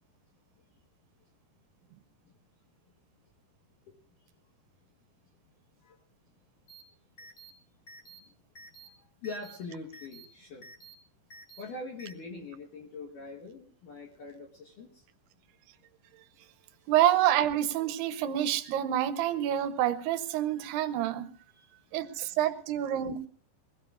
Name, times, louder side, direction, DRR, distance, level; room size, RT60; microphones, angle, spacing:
sound 1, 6.7-6.8 7.2-7.5 7.9-8.2 8.5-8.9 9.2-9.6 9.9-10.2 10.6-10.9 11.3-11.6 12.0-12.1, right 2 dB, 35° left, 1.5 m, -50 dB
voice 1, 8.2-8.5 8.8-10.7 11.6-15.1 16.8-16.9 21.5-21.9 22.2-22.5, left 3 dB, 65° left, 0 dB, 2.2 m, -44 dB
voice 2, 16.9-21.3 21.9-23.3, right 11 dB, 75° right, 10 dB, 2.4 m, -27 dB
23.0 x 18.0 x 2.4 m, 0.43 s
omnidirectional pair, 5.5 m